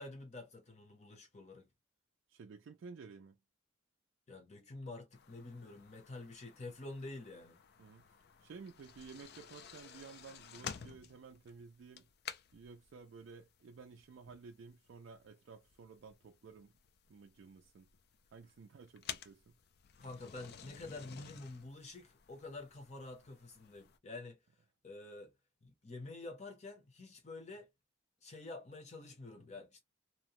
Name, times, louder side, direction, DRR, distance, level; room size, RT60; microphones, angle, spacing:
voice 1, 0.0-1.7 4.3-7.6 20.0-24.4 24.8-25.3 25.6-27.7 28.2-29.8, left 2 dB, 35° left, 0.8 m, -48 dB
voice 2, 2.3-3.4 7.8-8.1 8.4-12.1 12.5-16.7 17.1-17.9 18.3-19.5, right 5 dB, 60° right, 0.3 m, -54 dB
sound 1, 5.1-24.0, left 8 dB, 50° left, 0.3 m, -53 dB
2.8 x 2.1 x 2.9 m
head